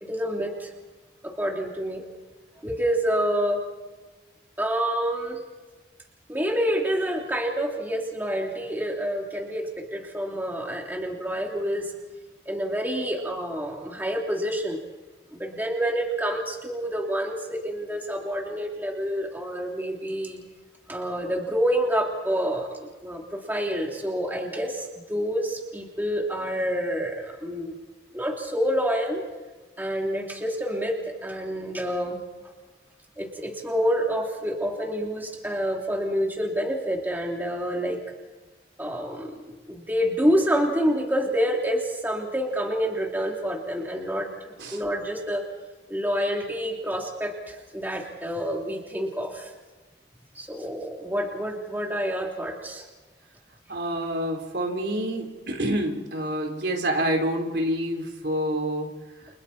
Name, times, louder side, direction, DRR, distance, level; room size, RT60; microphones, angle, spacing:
voice 1, 0.0-0.7 1.2-2.0 2.6-3.6 4.6-5.4 6.3-11.9 12.5-14.8 15.3-20.4 20.9-27.7 28.1-29.2 29.8-32.2 33.2-38.0 38.8-44.3 44.7-45.4 45.9-49.5 50.3-52.8, equal, 10° right, -1 dB, 2.9 m, -28 dB
voice 2, 53.7-58.9, right 1 dB, 70° right, 2 dB, 3.9 m, -27 dB
30.0 x 28.5 x 4.3 m, 1.2 s
head